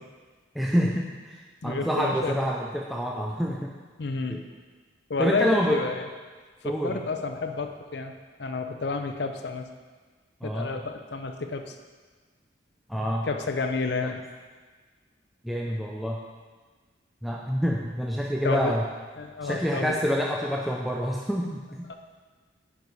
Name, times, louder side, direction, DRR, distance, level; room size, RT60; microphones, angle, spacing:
voice 1, 0.5-3.7 4.3-4.4 5.2-5.8 6.6-7.0 10.4-10.8 12.9-13.3 14.0-14.1 15.4-16.2 17.2-18.8 19.4-21.9, equal, ahead, -2 dB, 0.4 m, -27 dB
voice 2, 1.6-2.4 4.0-4.4 5.1-6.1 6.6-8.1 8.4-9.7 10.4-11.8 13.2-14.2 18.4-18.7 19.2-20.0 21.9-22.0, left 4 dB, 65° left, 6 dB, 0.6 m, -30 dB
9.3 x 5.0 x 4.1 m, 1.4 s
head